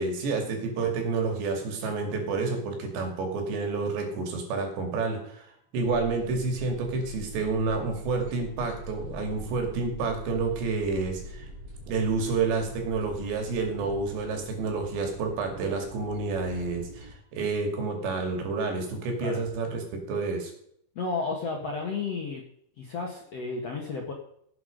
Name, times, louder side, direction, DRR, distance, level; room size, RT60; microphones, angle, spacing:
voice 1, 0.0-11.5 11.9-20.5, right 4 dB, 70° right, 4 dB, 4.7 m, -29 dB
sound 1, 5.8-17.1, left 1 dB, 40° right, 4.1 m, -43 dB
voice 2, 21.0-22.4 22.8-24.1, left 4 dB, 55° left, 0 dB, 1.9 m, -32 dB
17.0 x 8.3 x 5.4 m, 0.68 s
omnidirectional pair, 5.3 m